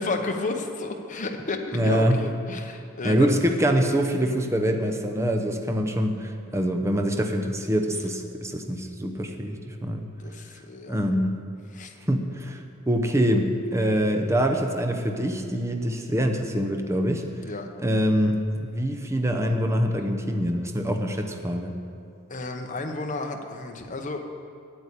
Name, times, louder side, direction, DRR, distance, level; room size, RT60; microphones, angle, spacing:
voice 1, 0.0-3.5 10.2-11.0 11.7-11.9 17.4-17.7 22.3-24.2, left 3 dB, 35° left, 3 dB, 1.0 m, -32 dB
voice 2, 1.7-2.2 3.0-10.1 10.9-11.4 12.1-17.2 17.8-21.8, equal, 15° right, 4 dB, 0.7 m, -25 dB
9.1 x 8.8 x 8.2 m, 2.4 s
head